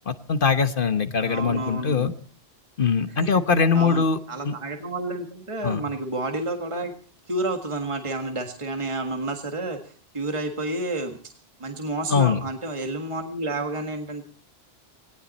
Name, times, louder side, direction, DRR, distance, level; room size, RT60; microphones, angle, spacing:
voice 1, 0.1-2.1 2.8-4.2 4.4-4.5 5.6-5.8 12.1-12.4, left 5 dB, 55° left, 11 dB, 1.2 m, -22 dB
voice 2, 1.3-2.2 3.2-3.4 3.7-6.9 7.3-11.3 11.6-14.2, right 2 dB, 30° right, 5 dB, 1.8 m, -30 dB
19.0 x 18.0 x 4.2 m, 0.39 s
omnidirectional pair, 1.1 m